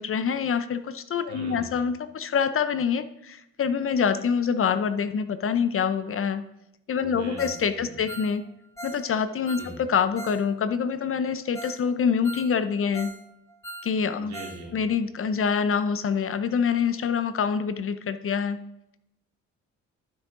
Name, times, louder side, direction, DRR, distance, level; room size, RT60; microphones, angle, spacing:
voice 1, 0.0-6.4 6.9-8.4 8.8-13.1 13.8-14.3 14.7-18.6, left 6 dB, 45° left, 12 dB, 0.6 m, -26 dB
voice 2, 1.3-1.8 6.9-8.0 9.5-9.8 14.1-14.8, right 2 dB, 60° right, -2 dB, 3.1 m, -41 dB
Ringtone, 7.4-7.7 7.9-10.4 10.7-10.8 11.2-11.3 11.5-11.8 12.1-13.2 13.5-14.6 14.9-15.0 15.4-15.5, right 1 dB, 10° left, 1.2 m, -41 dB
12.0 x 6.2 x 3.7 m, 0.83 s
cardioid pair, 90°, 30 cm